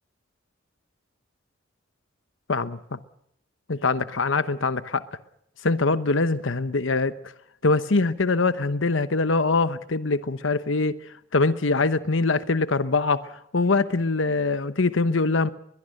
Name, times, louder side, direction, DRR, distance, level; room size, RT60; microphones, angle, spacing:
voice 1, 3.7-5.0 5.6-7.1 7.6-11.0 11.3-15.5, left 3 dB, 75° left, 1.0 m, -23 dB
22.0 x 22.0 x 6.6 m
head